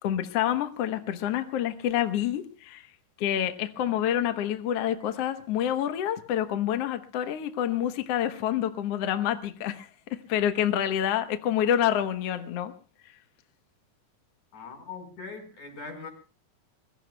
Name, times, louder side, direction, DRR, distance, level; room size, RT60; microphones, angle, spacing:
voice 1, 0.0-2.9 3.2-12.7, left 10 dB, 75° left, 1.4 m, -27 dB
voice 2, 14.5-16.1, left 4 dB, 50° left, 6.2 m, -41 dB
25.5 x 22.0 x 2.3 m
omnidirectional pair, 4.4 m